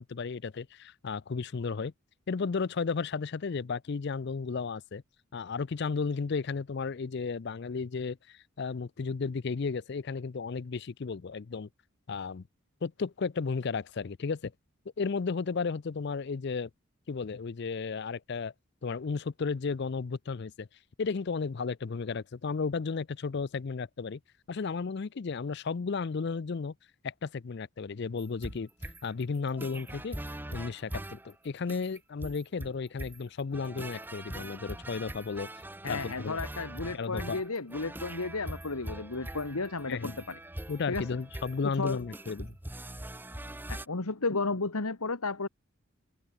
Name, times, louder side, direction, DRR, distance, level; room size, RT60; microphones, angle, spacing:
voice 1, 0.0-1.9 2.3-5.0 5.3-11.7 12.1-12.4 12.8-14.5 15.0-16.7 17.1-18.5 18.8-20.7 21.0-24.2 24.5-26.7 27.0-30.2 30.5-35.5 35.9-36.4 36.9-37.4 39.8-40.2 40.7-42.6, left 5 dB, 50° left, 0.5 m, -34 dB
sound 1, 28.2-43.9, right 1 dB, 10° right, 0.8 m, -42 dB
voice 2, 35.8-40.4 40.9-41.1 41.7-42.0 43.7-45.5, left 3 dB, 90° left, 1.7 m, -33 dB
head